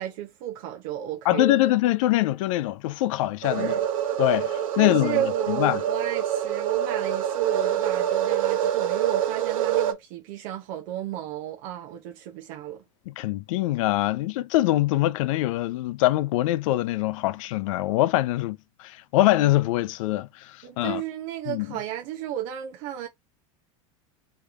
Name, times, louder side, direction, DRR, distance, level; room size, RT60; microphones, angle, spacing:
voice 1, 0.0-1.6 3.6-3.8 4.8-12.8 20.6-23.1, right 12 dB, 65° right, 0.9 m, -33 dB
voice 2, 1.2-3.8 4.2-5.8 13.1-21.0 21.5-21.7, left 16 dB, 75° left, 0.4 m, -24 dB
sound 1, 3.4-9.9, right 10 dB, 85° right, 1.3 m, -26 dB
3.3 x 3.3 x 4.8 m
hypercardioid pair, 105°, 17 cm